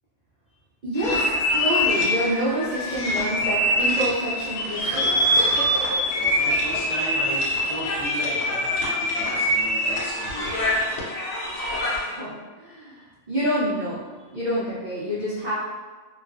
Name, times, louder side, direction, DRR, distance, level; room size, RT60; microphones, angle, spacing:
voice 1, 0.8-5.2 12.1-14.0 14.3-15.5, equal, 60° right, -10 dB, 0.5 m, -27 dB
sound 1, 1.0-12.2, left 1 dB, 70° left, 0.9 m, -24 dB
voice 2, 6.1-10.8, equal, 50° left, -9 dB, 0.6 m, -35 dB
2.4 x 2.2 x 2.3 m, 1.4 s
omnidirectional pair, 1.3 m